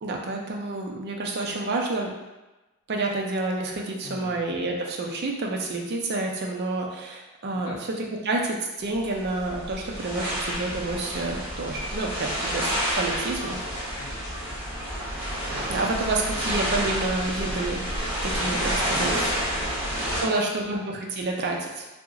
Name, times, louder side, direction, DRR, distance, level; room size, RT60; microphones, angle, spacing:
voice 1, 0.0-2.1 2.9-14.0 15.7-17.9 18.2-19.3 20.2-21.9, right 2 dB, 45° right, 0 dB, 0.5 m, -29 dB
voice 2, 4.0-4.4 7.5-7.8 14.0-14.5 16.3-16.5 17.4-17.7 19.5-20.7, left 3 dB, 75° left, -1 dB, 0.5 m, -44 dB
sound 1, 8.8-20.2, equal, 10° right, 0.9 m, -29 dB
2.9 x 2.1 x 3.6 m, 1.1 s
head